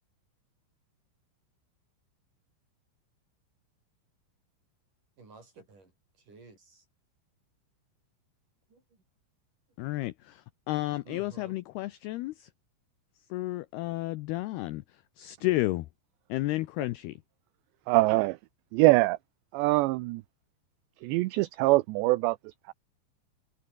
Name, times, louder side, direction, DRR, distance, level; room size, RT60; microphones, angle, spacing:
voice 1, 5.2-5.9 6.3-6.8 8.7-9.0 11.0-11.6, right 3 dB, 45° right, 9.2 m, -52 dB
voice 2, 9.8-12.5 13.3-14.8 15.2-15.9 16.3-17.1, left 18 dB, 85° left, 2.3 m, -32 dB
voice 3, 17.9-18.4 18.7-19.2 19.5-20.2 21.0-22.7, right 20 dB, 80° right, 2.7 m, -24 dB
omnidirectional pair, 5.4 m